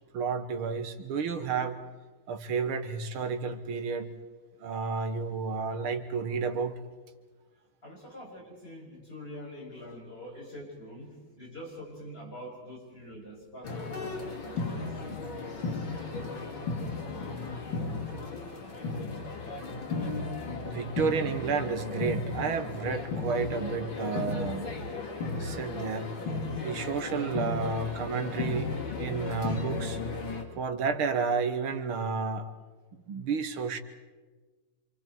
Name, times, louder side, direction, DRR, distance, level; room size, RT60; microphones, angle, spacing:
voice 1, 0.1-1.8 2.3-4.1 4.6-6.8 20.6-24.7 25.4-26.1 26.6-30.0 30.6-32.5 33.1-33.8, right 5 dB, 90° right, 9 dB, 2.1 m, -31 dB
voice 2, 7.8-14.0 14.4-15.2 26.8-28.3, equal, 25° left, -4 dB, 6.6 m, -45 dB
sound 1, 13.6-30.4, left 3 dB, 70° left, 3.2 m, -35 dB
27.5 x 27.0 x 4.5 m, 1.3 s
omnidirectional pair, 2.3 m